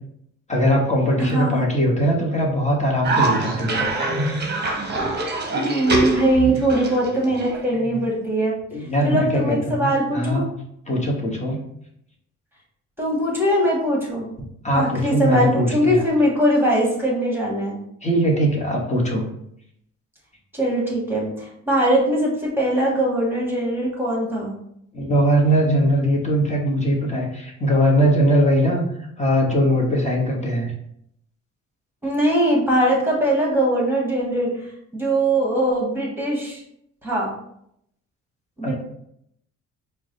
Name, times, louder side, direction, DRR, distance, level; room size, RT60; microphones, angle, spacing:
voice 1, 0.5-3.9 8.7-10.4 10.9-11.6 14.6-16.0 18.0-19.2 24.9-28.9 29.2-30.7 38.6-38.7, equal, 25° left, -1 dB, 1.1 m, -20 dB
voice 2, 1.2-1.6 5.6-8.6 9.0-10.5 13.0-14.3 14.7-17.8 20.5-24.6 32.0-34.5 34.9-36.6 37.0-37.3 38.6-38.7, right 1 dB, 5° right, -3 dB, 1.5 m, -21 dB
Cough, 3.0-8.1, right 2 dB, 35° right, 0.8 m, -24 dB
4.6 x 2.2 x 3.8 m, 0.75 s
cardioid pair, 90°, 30 cm